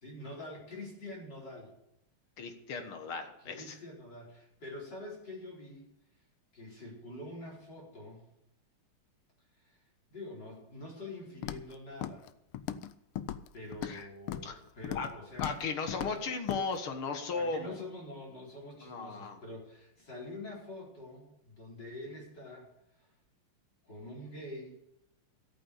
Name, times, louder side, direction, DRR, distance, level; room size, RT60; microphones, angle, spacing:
voice 1, 0.0-1.7 3.4-5.9 6.5-8.3 9.6-9.8 10.1-12.3 13.5-15.6 16.1-16.3 17.3-22.7 23.0-23.1 23.8-24.8, left 1 dB, 50° left, -3 dB, 5.3 m, -46 dB
voice 2, 2.4-3.8 13.8-14.1 14.4-14.6 15.0-15.1 15.4-17.8 18.8-19.4, left 4 dB, 75° left, 6 dB, 2.4 m, -36 dB
Walk footsteps, 11.4-11.7 12.0-12.3 12.5-12.9 13.2-14.0 14.3-14.5 14.8-15.1 15.4-15.6 15.9-16.1 16.5-16.6, left 11 dB, 90° left, 1.6 m, -37 dB
14.0 x 8.8 x 6.9 m, 0.84 s
omnidirectional pair, 2.4 m